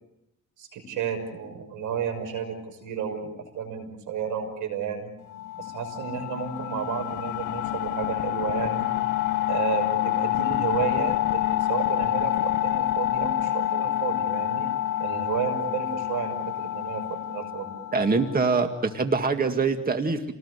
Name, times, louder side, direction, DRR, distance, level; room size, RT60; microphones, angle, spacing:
voice 1, 0.6-5.1 5.6-8.9 9.5-14.7 15.0-17.7, right 7 dB, 85° right, 7 dB, 6.2 m, -32 dB
sound 1, 5.3-18.8, left 13 dB, 80° left, 1.4 m, -27 dB
voice 2, 17.9-20.3, right 4 dB, 30° right, 6 dB, 2.0 m, -24 dB
29.0 x 19.5 x 8.2 m, 0.86 s
cardioid pair, 90°, 30 cm